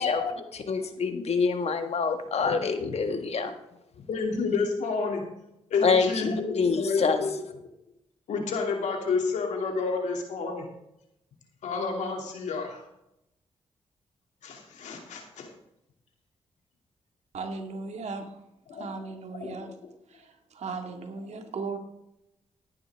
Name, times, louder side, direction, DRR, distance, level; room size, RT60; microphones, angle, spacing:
voice 1, 0.0-0.4 2.4-3.2 4.1-5.2 5.7-7.4 8.3-10.7 11.6-12.8 14.4-15.5 18.7-18.9 19.4-19.7, left 4 dB, 85° left, 2 dB, 2.6 m, -30 dB
voice 2, 0.5-3.5 5.8-7.2, left 5 dB, 60° left, 6 dB, 1.7 m, -26 dB
voice 3, 17.3-18.4 18.7-19.8 20.1-21.8, right 4 dB, 70° right, 4 dB, 2.1 m, -37 dB
14.0 x 10.5 x 3.5 m, 0.83 s
cardioid pair, 60°, 12 cm